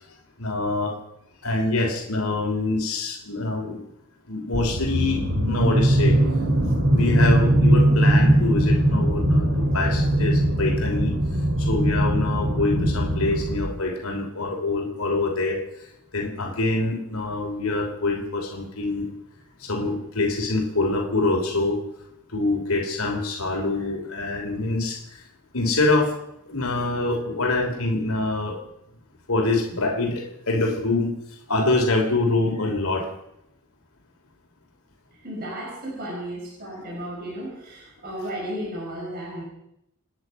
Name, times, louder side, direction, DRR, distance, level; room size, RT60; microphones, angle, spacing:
voice 1, 0.4-1.0 1.4-3.8 4.3-6.2 6.9-11.1 11.6-19.1 19.6-21.8 22.3-25.2 25.5-26.2 26.4-28.6 29.3-33.1 36.6-36.8 38.2-38.3, left 2 dB, 80° left, 1 dB, 3.1 m, -25 dB
sound 1, 4.5-13.6, right 1 dB, 60° right, 3.8 m, -20 dB
voice 2, 35.2-39.4, right 1 dB, 45° right, -4 dB, 5.1 m, -34 dB
28.0 x 9.6 x 5.4 m, 0.79 s
head